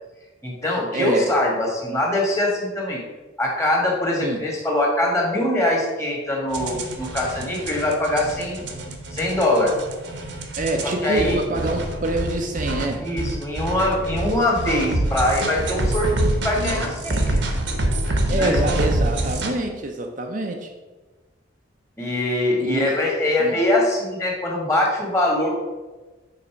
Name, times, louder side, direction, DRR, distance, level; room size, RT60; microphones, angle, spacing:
voice 1, 0.4-3.0 3.4-8.6 9.1-9.7 10.8-11.4 13.0-17.6 18.0-18.6 22.0-25.5, left 1 dB, 15° left, -2 dB, 1.5 m, -23 dB
voice 2, 0.9-1.3 4.2-4.4 10.6-13.1 18.3-20.7 22.6-22.9 23.4-23.6, right 2 dB, 40° right, 3 dB, 0.6 m, -26 dB
sound 1, 6.5-19.5, right 1 dB, 65° right, 1.0 m, -26 dB
6.6 x 4.0 x 5.7 m, 1.2 s
head